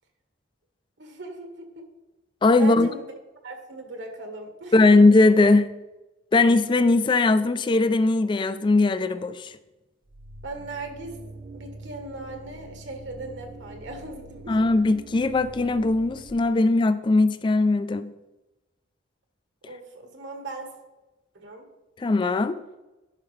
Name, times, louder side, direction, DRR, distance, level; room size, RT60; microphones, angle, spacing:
voice 1, 1.0-1.8 2.6-3.0 3.4-4.7 10.4-11.2 11.5-14.6 19.6-20.7 21.3-21.7, right 2 dB, 65° right, 1.3 m, -38 dB
voice 2, 2.4-2.9 4.7-5.7 6.3-9.6 14.5-18.1 22.0-22.6, left 2 dB, 25° left, 0.3 m, -19 dB
sound 1, 10.1-16.3, right 2 dB, 50° right, 0.7 m, -44 dB
10.5 x 5.7 x 3.2 m
head